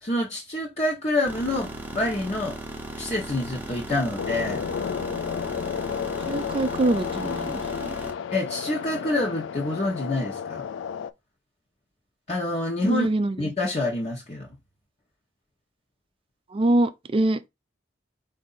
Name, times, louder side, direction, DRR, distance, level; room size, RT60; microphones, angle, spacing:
voice 1, 0.0-2.6 3.0-4.7 8.3-10.6 12.3-13.1 13.4-14.5, left 1 dB, 35° left, 1.1 m, -27 dB
sound 1, 1.2-8.1, right 1 dB, 10° right, 0.8 m, -37 dB
sound 2, 4.2-11.1, left 7 dB, 75° left, 0.3 m, -32 dB
voice 2, 6.3-7.6 12.8-13.3 16.5-17.5, right 2 dB, 30° right, 0.4 m, -24 dB
4.7 x 2.7 x 4.0 m
head